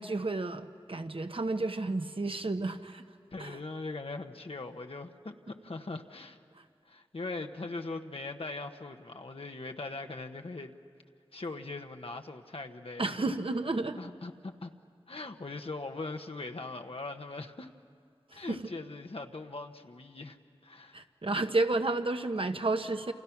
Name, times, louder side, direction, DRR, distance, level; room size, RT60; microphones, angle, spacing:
voice 1, 0.0-3.0 3.4-3.6 6.6-6.7 13.0-14.0 18.3-18.6 20.9-23.1, right 2 dB, 65° right, 7 dB, 1.2 m, -31 dB
voice 2, 3.3-6.4 6.8-10.7 11.3-13.2 14.0-14.7 15.1-17.7 18.3-20.4 20.6-21.0, left 3 dB, 75° left, 4 dB, 1.1 m, -40 dB
29.0 x 28.5 x 6.0 m, 2.3 s
wide cardioid pair, 40°, 10 cm